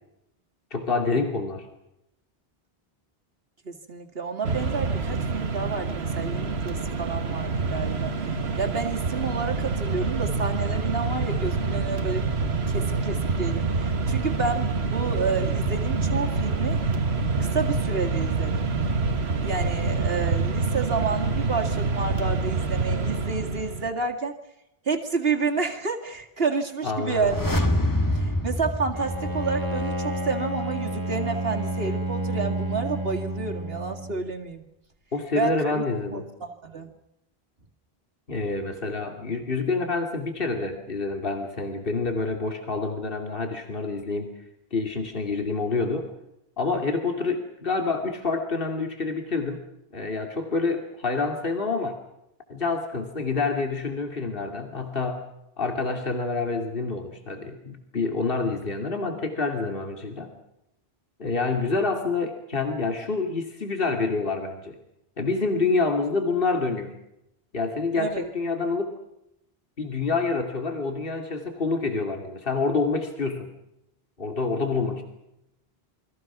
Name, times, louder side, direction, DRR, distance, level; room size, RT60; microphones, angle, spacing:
voice 1, 0.7-1.7 26.8-27.5 35.1-36.2 38.3-44.3 44.7-46.1 46.6-49.6 49.9-52.0 52.5-55.2 55.6-60.3 61.2-64.8 65.2-66.9 67.5-68.9 69.8-73.5 74.2-75.0, left 3 dB, 60° left, 4 dB, 2.8 m, -27 dB
voice 2, 3.6-8.1 8.6-12.3 12.7-16.8 17.5-18.6 19.4-24.3 24.9-27.7 28.1-34.6 35.3-35.8 36.1-36.9 68.0-68.3, right 4 dB, 70° right, 3 dB, 2.5 m, -30 dB
Mechanisms, 4.4-23.9, right 4 dB, 85° right, 1.7 m, -26 dB
sound 1, 27.1-30.0 30.3-30.4, left 1 dB, 20° left, 1.8 m, -26 dB
Bowed string instrument, 28.9-34.3, right 1 dB, 20° right, 1.7 m, -30 dB
28.5 x 22.5 x 6.0 m, 0.84 s
omnidirectional pair, 1.0 m